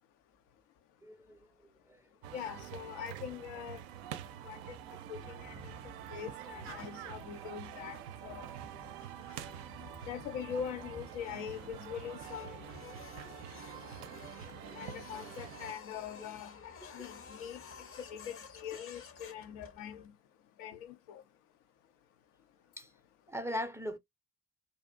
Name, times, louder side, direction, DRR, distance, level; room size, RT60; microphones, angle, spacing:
voice 1, 1.0-2.0 22.8-22.9 23.3-24.0, equal, 5° right, 0.5 m, -40 dB
sound 1, 2.2-15.7, right 11 dB, 65° right, 0.5 m, -47 dB
voice 2, 2.3-3.8 4.4-5.7 6.1-8.5 10.1-12.6 14.7-17.6 18.0-20.1 20.6-21.2, left 8 dB, 70° left, 0.6 m, -43 dB
sound 2, 5.2-15.5, left 2 dB, 90° left, 0.9 m, -55 dB
Printer, 12.2-20.1, left 6 dB, 35° left, 0.7 m, -51 dB
2.6 x 2.4 x 2.3 m
figure-of-eight pair, 45°, 39 cm